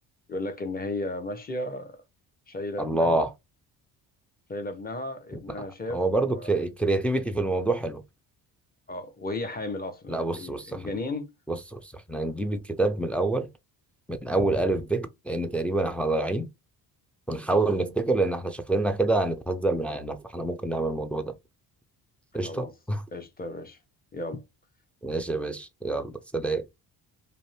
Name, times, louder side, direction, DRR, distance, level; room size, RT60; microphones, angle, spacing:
voice 1, 0.3-2.0 2.5-3.2 4.5-6.5 8.9-11.3 17.5-17.7 22.4-22.7 23.1-23.8 24.1-24.4, left 2 dB, 20° left, 0.7 m, -35 dB
voice 2, 2.8-3.3 5.6-8.0 10.1-10.9 11.5-13.5 14.1-16.5 17.3-21.3 22.3-23.0 25.0-26.7, right 2 dB, 5° left, 0.3 m, -27 dB
2.6 x 2.1 x 3.2 m
supercardioid pair, 75°, 44 cm